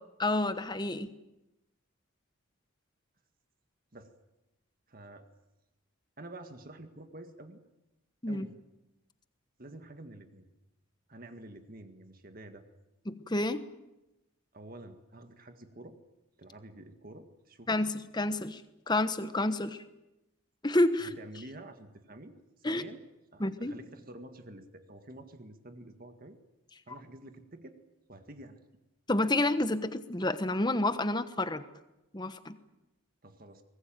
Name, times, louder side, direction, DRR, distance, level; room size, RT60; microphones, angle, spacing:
voice 1, 0.2-1.1 8.2-8.5 13.1-13.6 17.7-19.8 20.6-21.2 22.6-22.8 23.4-23.7 29.1-31.6 32.1-32.6, left 2 dB, 20° left, 11 dB, 1.1 m, -29 dB
voice 2, 4.9-5.3 6.2-7.6 8.3-8.6 9.6-10.5 11.1-12.6 14.5-16.0 16.4-17.8 21.0-23.0 23.3-26.4 26.9-27.8 28.1-28.6 33.2-33.6, right 1 dB, 40° right, 7 dB, 1.8 m, -49 dB
23.5 x 20.0 x 9.2 m, 0.94 s
head